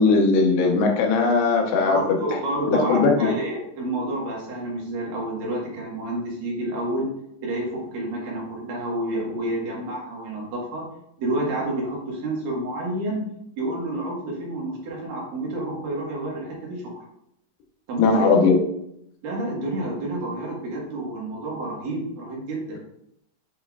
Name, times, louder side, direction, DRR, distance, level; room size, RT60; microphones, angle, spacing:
voice 1, 0.0-2.4 2.7-3.1 18.0-18.6, left 4 dB, 85° left, 2 dB, 3.2 m, -19 dB
voice 2, 1.9-7.1 7.4-10.9 11.2-13.3 13.6-16.8 17.9-18.3 19.2-22.8, right 1 dB, 65° right, -3 dB, 3.0 m, -29 dB
8.0 x 5.3 x 2.4 m, 0.75 s
omnidirectional pair, 4.8 m